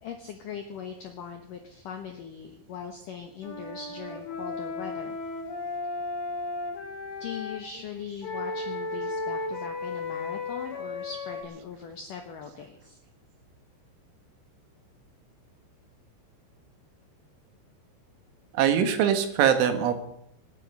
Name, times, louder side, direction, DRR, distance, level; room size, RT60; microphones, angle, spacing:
voice 1, 0.0-5.2 7.2-13.0, left 7 dB, 80° left, 4 dB, 1.9 m, -40 dB
Wind instrument woodwind instrument, 3.4-7.6 8.2-11.4, left 3 dB, 45° left, 1.8 m, -34 dB
voice 2, 18.5-19.9, right 8 dB, 80° right, 7 dB, 3.8 m, -22 dB
26.0 x 9.9 x 5.5 m, 0.76 s
omnidirectional pair, 5.6 m